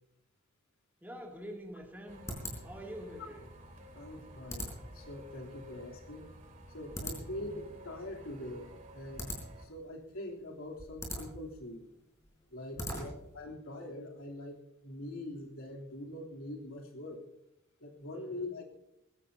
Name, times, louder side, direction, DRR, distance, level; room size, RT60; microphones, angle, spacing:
voice 1, 1.0-2.3 2.6-3.5 7.1-7.2 12.7-13.1 18.1-18.6, equal, 10° right, -1 dB, 2.6 m, -46 dB
sound 1, 1.2-13.4, equal, 15° left, 4.4 m, -45 dB
sound 2, 2.1-9.7, equal, 35° right, 2.3 m, -53 dB
voice 2, 3.9-6.3 6.7-8.7 8.9-9.3 9.6-11.9 12.5-17.2 17.8-18.6, left 1 dB, 85° left, 0 dB, 3.2 m, -43 dB
21.5 x 15.5 x 2.8 m, 0.83 s
head